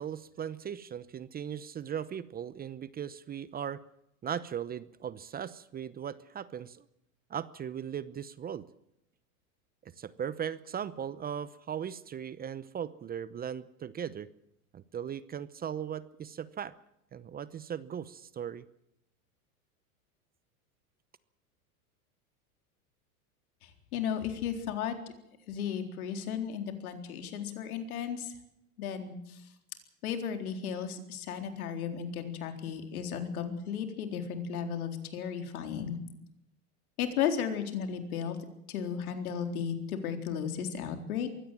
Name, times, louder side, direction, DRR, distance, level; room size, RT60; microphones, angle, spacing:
voice 1, 0.0-3.8 4.2-6.8 7.3-8.6 9.8-14.3 14.7-16.7 17.1-18.6, right 8 dB, 20° right, 17 dB, 0.8 m, -38 dB
voice 2, 23.6-24.9 25.5-28.4 28.8-29.5 30.0-36.0 37.0-38.4 38.7-41.3, left 8 dB, 75° left, 6 dB, 4.0 m, -34 dB
23.0 x 16.5 x 7.6 m, 0.80 s
hypercardioid pair, 110°, 44 cm